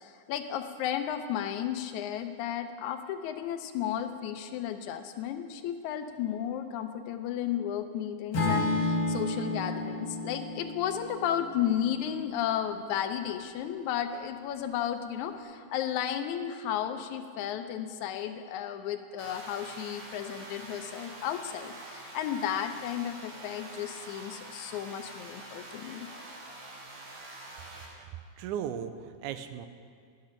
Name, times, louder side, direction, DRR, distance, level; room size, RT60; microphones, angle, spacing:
voice 1, 0.0-26.1, left 10 dB, 80° left, 8 dB, 1.9 m, -33 dB
Acoustic guitar / Strum, 8.3-12.6, left 2 dB, 40° left, 1.8 m, -32 dB
sound 1, 19.2-27.8, right 2 dB, 65° right, 3.2 m, -46 dB
voice 2, 27.9-29.7, right 9 dB, 90° right, 10 dB, 2.1 m, -37 dB
11.5 x 6.7 x 5.7 m, 2.2 s
omnidirectional pair, 3.5 m